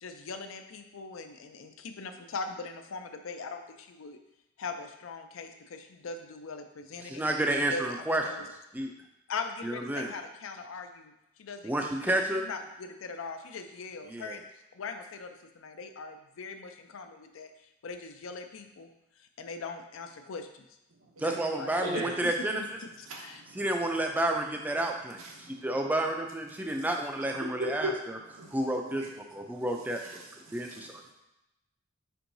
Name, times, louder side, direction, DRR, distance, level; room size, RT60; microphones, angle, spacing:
voice 1, 0.0-4.2 4.6-8.5 9.3-11.1 11.4-11.7 12.0-12.1 12.4-14.4 14.7-17.5 17.8-18.9 19.4-20.6 21.2-21.7 22.2-22.3 23.2-23.4, left 4 dB, 75° left, 7 dB, 0.4 m, -41 dB
voice 2, 7.0-8.2 8.7-8.9 9.6-10.1 11.6-12.5 14.1-14.4 21.2-22.6 23.5-28.2 28.5-29.1 29.3-30.2 30.5-31.0, right 1 dB, 10° right, 2 dB, 0.3 m, -30 dB
voice 3, 21.7-22.2 23.1-23.6 25.2-25.7 26.6-26.9 27.4-27.9 28.3-29.1 29.5-29.6 30.0-30.2 30.4-31.1, right 2 dB, 90° right, 0 dB, 0.9 m, -39 dB
4.5 x 4.5 x 2.6 m, 0.91 s
head